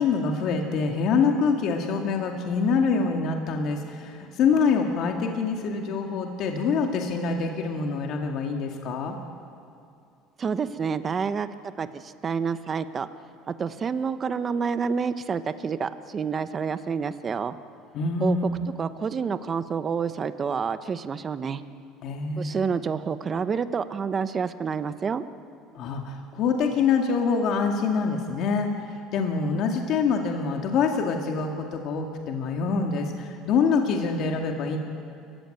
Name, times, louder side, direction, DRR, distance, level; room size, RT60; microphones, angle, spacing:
voice 1, 0.0-9.2 17.9-18.6 22.0-22.6 25.7-34.8, left 5 dB, 55° left, 2 dB, 2.1 m, -25 dB
voice 2, 10.4-11.5 11.8-13.1 13.5-17.5 18.2-18.5 18.8-21.6 22.4-25.2, right 6 dB, 30° right, 11 dB, 1.0 m, -28 dB
29.0 x 15.5 x 9.1 m, 2.5 s
cardioid pair, 130°, 0 cm